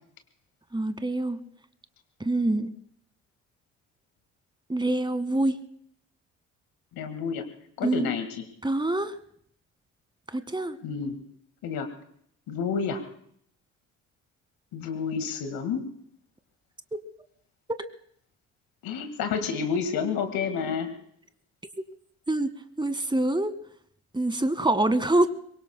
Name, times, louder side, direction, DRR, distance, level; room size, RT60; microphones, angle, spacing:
voice 1, 0.7-1.4 2.2-2.7 4.7-5.6 7.8-8.1 8.6-9.2 10.3-10.8 22.3-22.5 22.8-23.5 24.1-25.3, right 2 dB, 10° right, 11 dB, 1.7 m, -25 dB
voice 2, 6.9-7.5 7.8-8.4 10.8-11.2 11.6-11.9 12.5-13.0 14.7-15.9 18.8-20.9, left 6 dB, 65° left, 8 dB, 1.8 m, -29 dB
26.5 x 23.0 x 2.2 m, 0.66 s
hypercardioid pair, 45°, 38 cm